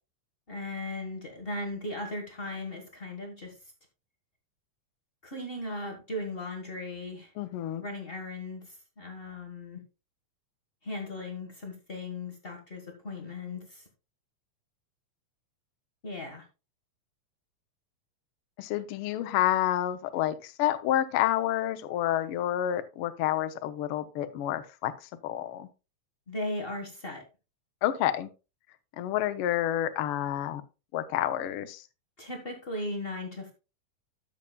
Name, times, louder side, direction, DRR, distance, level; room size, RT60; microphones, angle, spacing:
voice 1, 0.5-3.5 5.2-7.3 7.8-9.8 10.8-13.8 16.0-16.4 26.3-27.2 32.2-33.5, left 2 dB, 50° left, 2 dB, 0.6 m, -37 dB
voice 2, 7.4-7.8 18.6-24.9 25.2-25.7 27.8-28.3 29.0-30.6 30.9-31.8, left 12 dB, 80° left, 10 dB, 1.2 m, -29 dB
13.5 x 6.8 x 2.2 m, 0.29 s
omnidirectional pair, 3.4 m